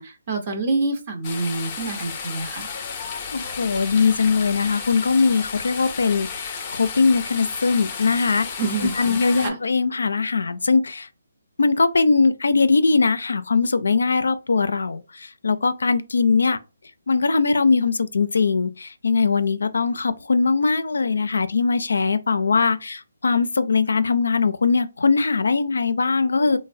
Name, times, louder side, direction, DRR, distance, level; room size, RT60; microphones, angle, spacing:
voice 1, 0.0-2.7 8.6-9.6, right 3 dB, 35° right, 0.7 m, -27 dB
sound 1, 1.2-9.5, left 5 dB, 30° left, 0.6 m, -33 dB
voice 2, 3.3-8.5 8.8-11.1 11.6-16.6 17.1-26.6, left 4 dB, 75° left, 0.4 m, -21 dB
3.1 x 2.1 x 2.6 m
hypercardioid pair, 155°, 0 cm